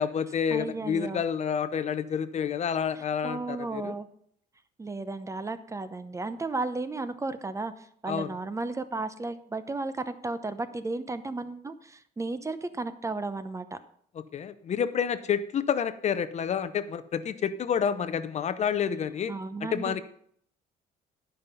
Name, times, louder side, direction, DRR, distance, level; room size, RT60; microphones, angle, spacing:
voice 1, 0.0-3.9 8.1-8.3 14.3-19.3 19.6-20.0, left 7 dB, 40° left, 13 dB, 0.6 m, -29 dB
voice 2, 0.5-1.2 3.2-4.1 4.8-13.8 19.3-20.0, right 3 dB, 20° right, 12 dB, 0.7 m, -34 dB
12.0 x 5.6 x 5.5 m, 0.66 s
cardioid pair, 110°, 17 cm